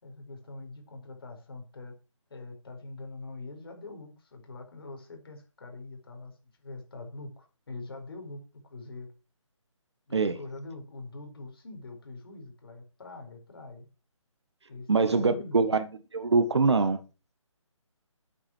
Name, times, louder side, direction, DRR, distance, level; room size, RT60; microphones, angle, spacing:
voice 1, 0.0-2.0 2.3-6.4 6.6-9.1 10.1-13.9 14.7-15.6, left 2 dB, 45° left, 4.8 m, -43 dB
voice 2, 14.9-15.8 16.1-17.0, right 4 dB, 55° right, 1.7 m, -23 dB
12.5 x 8.7 x 4.6 m
hypercardioid pair, 175°, 17 cm